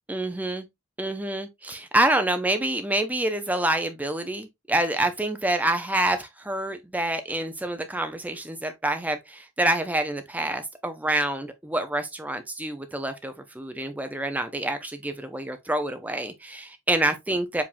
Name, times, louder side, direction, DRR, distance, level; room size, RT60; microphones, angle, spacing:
voice 1, 0.1-0.7 1.0-17.6, right 1 dB, 5° right, 0.5 m, -27 dB
4.9 x 3.5 x 2.5 m
head